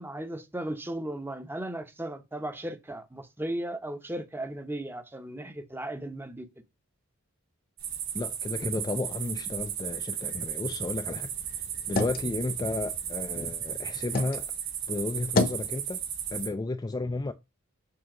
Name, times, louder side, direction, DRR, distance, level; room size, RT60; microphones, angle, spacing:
voice 1, 0.0-6.5, right 1 dB, 10° right, 0.7 m, -36 dB
sound 1, 7.8-16.5, right 9 dB, 80° right, 4.2 m, -35 dB
voice 2, 8.1-14.5 14.9-16.0 16.3-17.3, left 2 dB, 20° left, 0.3 m, -33 dB
sound 2, 10.6-14.4 14.8-15.7, left 2 dB, 45° left, 0.9 m, -33 dB
7.5 x 2.8 x 5.9 m
head